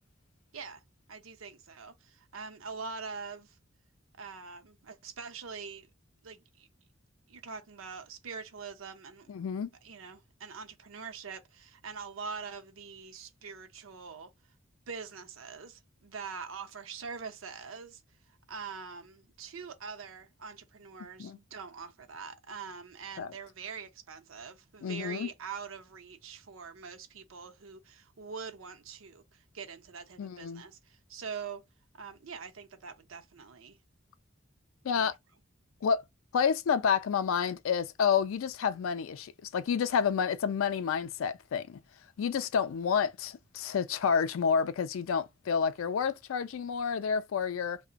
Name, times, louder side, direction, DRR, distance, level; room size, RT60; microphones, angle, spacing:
voice 1, 1.1-3.6 4.2-5.9 6.2-6.7 7.3-9.3 9.8-14.3 14.9-18.0 18.5-31.6 31.9-33.8 34.9-35.1, right 5 dB, 85° right, 0.6 m, -44 dB
voice 2, 9.3-9.7 21.2-21.4 23.2-23.3 24.8-25.3 30.2-30.6 34.8-35.2 35.8-36.0 36.3-41.8 42.2-47.8, left 6 dB, 85° left, 0.4 m, -29 dB
2.8 x 2.1 x 2.5 m
head